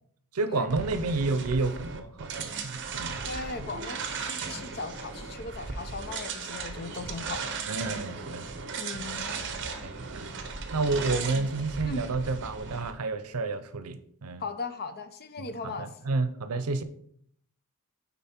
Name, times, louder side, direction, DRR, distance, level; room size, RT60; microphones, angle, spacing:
voice 1, 0.3-3.2 3.6-3.7 7.7-9.1 9.8-10.3 10.7-14.4 15.4-16.8, right 3 dB, 85° right, 0.7 m, -31 dB
sound 1, 0.7-12.9, right 5 dB, 55° right, 0.9 m, -36 dB
voice 2, 3.2-7.4 8.8-9.3 11.8-12.0 14.4-15.9, left 3 dB, 45° left, 0.7 m, -38 dB
9.1 x 4.1 x 4.4 m
head